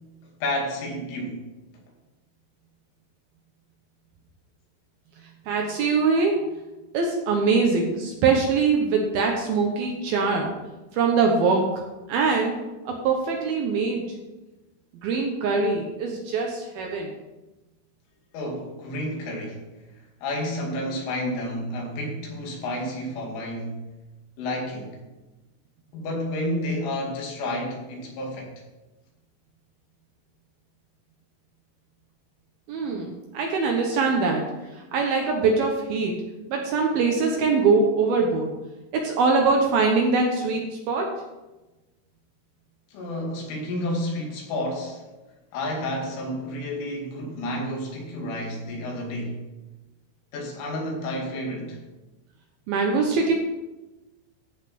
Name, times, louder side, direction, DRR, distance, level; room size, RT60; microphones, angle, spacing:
voice 1, 0.4-1.4 18.3-19.6 20.2-23.9 24.4-25.0 25.9-28.5 42.9-45.0 45.5-49.3 50.3-51.8, left 1 dB, 90° left, -1 dB, 4.9 m, -30 dB
voice 2, 5.5-6.4 6.9-10.5 10.9-11.7 12.1-12.6 12.9-14.0 14.9-17.1 32.7-34.5 34.7-36.2 36.5-38.5 38.9-41.2 52.7-53.3, right 4 dB, 70° right, 1 dB, 2.4 m, -23 dB
14.0 x 5.8 x 5.9 m, 1.1 s
omnidirectional pair, 5.5 m